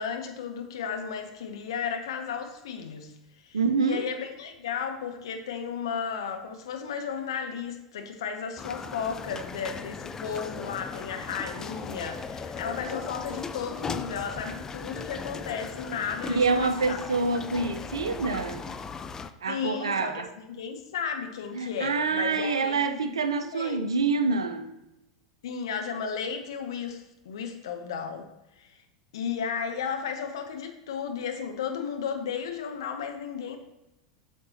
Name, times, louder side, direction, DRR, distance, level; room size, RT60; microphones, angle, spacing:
voice 1, 0.0-3.1 3.4-17.0 19.5-20.1 20.5-23.1 23.5-23.8 25.4-28.3 28.6-28.8 29.1-33.6, left 7 dB, 65° left, 1.0 m, -34 dB
voice 2, 3.5-4.0 16.3-18.6 19.4-20.3 21.5-24.8, right 4 dB, 75° right, 0.6 m, -26 dB
sound 1, 8.6-19.3, left 5 dB, 20° left, 0.4 m, -38 dB
9.0 x 6.5 x 2.8 m
figure-of-eight pair, 85°, 3 cm